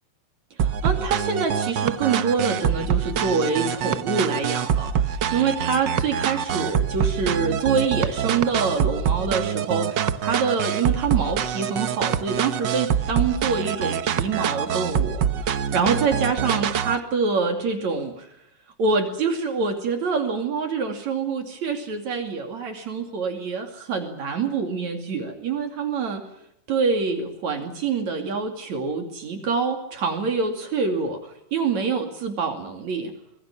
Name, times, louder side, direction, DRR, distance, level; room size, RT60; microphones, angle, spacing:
voice 1, 0.6-18.3 18.8-26.2 26.7-33.1, right 5 dB, 65° right, 4 dB, 3.9 m, -26 dB
sound 1, 0.6-17.0, right 8 dB, 85° right, 0.9 m, -25 dB
25.5 x 21.0 x 7.2 m, 0.79 s
omnidirectional pair, 3.5 m